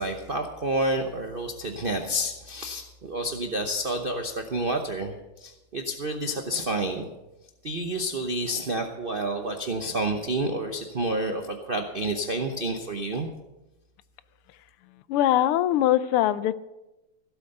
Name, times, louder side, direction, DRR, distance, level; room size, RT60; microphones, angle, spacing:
voice 1, 0.0-7.1 7.6-13.3, right 1 dB, 60° right, 4 dB, 0.5 m, -29 dB
voice 2, 15.1-16.5, left 12 dB, 85° left, 16 dB, 1.5 m, -22 dB
15.5 x 8.3 x 6.6 m, 1.0 s
omnidirectional pair, 2.4 m